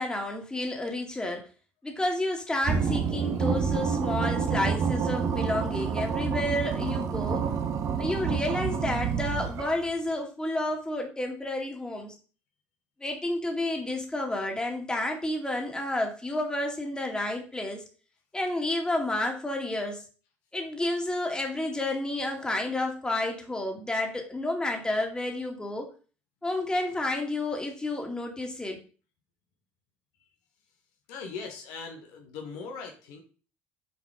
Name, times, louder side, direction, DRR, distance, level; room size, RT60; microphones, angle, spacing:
voice 1, 0.0-1.5 1.8-7.5 8.0-12.1 13.0-17.8 18.3-20.0 20.5-25.9 26.4-28.8, left 1 dB, 15° left, 1 dB, 2.2 m, -30 dB
sound 1, 2.6-9.9, right 6 dB, 55° right, 1.1 m, -28 dB
voice 2, 31.1-33.2, left 5 dB, 70° left, 2 dB, 1.4 m, -40 dB
6.7 x 3.9 x 5.0 m, 0.38 s
hypercardioid pair, 70°, 6 cm